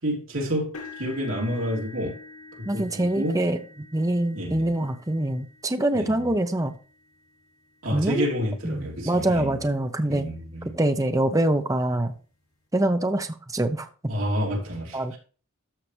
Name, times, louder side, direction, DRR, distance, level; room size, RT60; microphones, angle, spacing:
voice 1, 0.0-2.2 2.6-3.4 4.3-4.7 5.9-6.2 7.8-9.7 10.1-10.8 14.1-15.2, equal, 70° right, 3.4 m, -29 dB
sound 1, 0.7-8.8 9.4-9.6 10.1-10.2 11.6-11.7, left 3 dB, 75° left, 2.9 m, -47 dB
voice 2, 2.6-3.6 3.9-6.7 7.9-8.3 8.6-10.3 10.7-12.1 12.7-14.1 14.9-15.2, right 1 dB, 15° right, 0.7 m, -24 dB
13.5 x 5.7 x 3.4 m
head